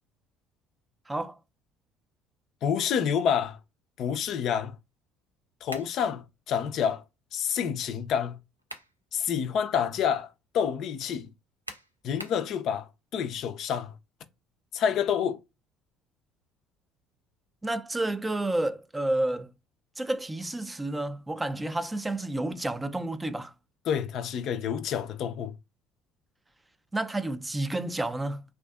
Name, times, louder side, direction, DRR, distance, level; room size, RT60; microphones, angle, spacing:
voice 1, 1.1-1.4 17.6-19.5 20.0-23.5 26.9-28.4, right 2 dB, 15° right, 0.4 m, -30 dB
voice 2, 2.6-3.6 4.0-4.7 5.6-7.0 7.3-8.4 9.1-10.3 10.5-11.3 12.0-12.9 13.1-13.9 14.7-15.4 23.9-25.5, left 8 dB, 50° left, 0.4 m, -28 dB
sound 1, 5.7-6.0 8.3-9.0 9.5-9.6 11.7-12.5, right 1 dB, 90° right, 0.3 m, -42 dB
2.5 x 2.4 x 2.3 m
figure-of-eight pair, 55°, 0 cm